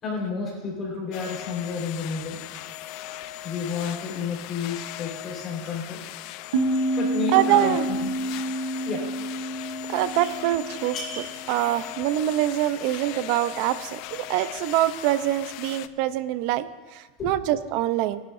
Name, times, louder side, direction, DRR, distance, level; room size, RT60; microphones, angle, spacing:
voice 1, 0.0-2.4 3.4-6.0 7.0-8.1 8.8-9.2 9.6-9.8 10.9-11.4 17.2-17.3, left 4 dB, 30° left, -2 dB, 4.2 m, -31 dB
sound 1, 1.1-15.9, left 14 dB, 50° left, 0.4 m, -39 dB
sound 2, 6.5-11.9, right 1 dB, 90° right, 1.1 m, -29 dB
voice 2, 7.3-7.9 9.9-11.0 11.5-18.2, right 13 dB, 55° right, 13 dB, 0.6 m, -24 dB
20.0 x 10.5 x 2.6 m, 1.3 s
supercardioid pair, 150°, 0 cm